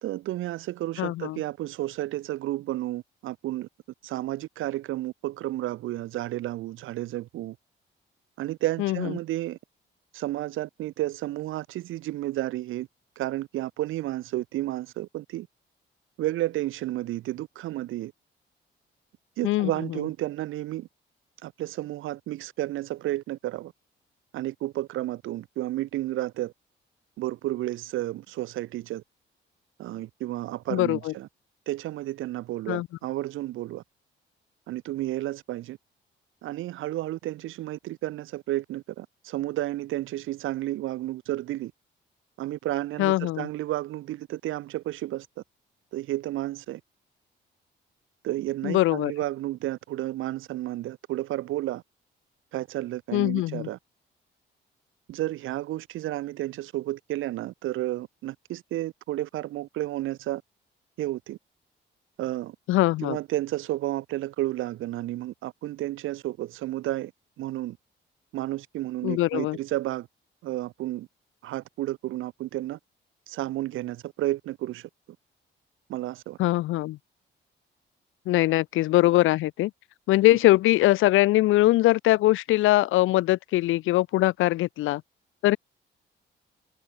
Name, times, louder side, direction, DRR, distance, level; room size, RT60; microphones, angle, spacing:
voice 1, 0.0-3.7 4.0-7.6 8.4-9.6 10.1-12.9 13.2-15.5 16.2-18.1 19.4-20.9 21.4-23.7 24.3-26.5 27.2-29.0 29.8-31.3 31.7-33.8 34.7-35.8 36.4-41.7 42.4-45.3 45.9-46.8 48.2-51.8 52.5-53.8 55.1-60.4 61.0-61.4 62.2-62.6 63.0-67.1 67.4-67.8 68.3-70.1 70.4-71.1 71.4-72.8 73.3-74.9 75.9-76.4, right 15 dB, 85° right, 2.8 m, -32 dB
voice 2, 1.0-1.4 8.8-9.1 19.4-19.7 30.7-31.1 32.7-32.9 43.0-43.5 48.6-49.1 53.1-53.7 62.7-63.2 69.0-69.6 76.4-77.0 78.3-79.7 80.1-85.0 85.4-85.6, left 17 dB, 90° left, 1.0 m, -22 dB
cardioid pair, 90°, 20 cm